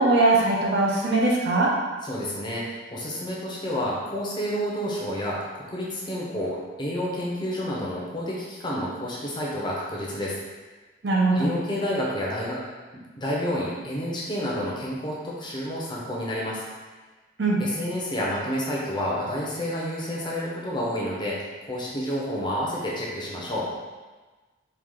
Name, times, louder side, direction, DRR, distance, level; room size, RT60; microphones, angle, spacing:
voice 1, 0.0-1.7 11.0-11.5 17.4-17.6, right 2 dB, 55° right, -3 dB, 0.8 m, -21 dB
voice 2, 2.0-10.4 11.4-12.6 13.2-16.6 17.6-23.6, equal, 25° left, -5 dB, 0.7 m, -29 dB
4.7 x 2.4 x 3.8 m, 1.3 s
head